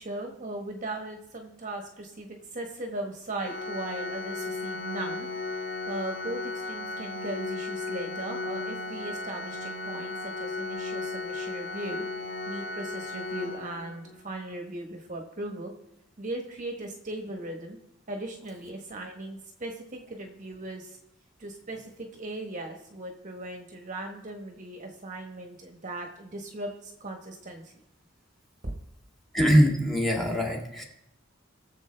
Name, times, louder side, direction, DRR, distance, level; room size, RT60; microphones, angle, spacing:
voice 1, 0.0-5.3 5.9-12.0 12.5-15.7 16.2-17.8 18.1-21.0 21.4-27.7 28.6-28.8, right 2 dB, 40° right, 2 dB, 1.2 m, -38 dB
Organ, 3.4-14.2, left 3 dB, 80° left, 4.8 m, -35 dB
voice 2, 29.3-30.8, equal, ahead, 0 dB, 2.0 m, -22 dB
20.0 x 7.4 x 3.4 m, 0.81 s
head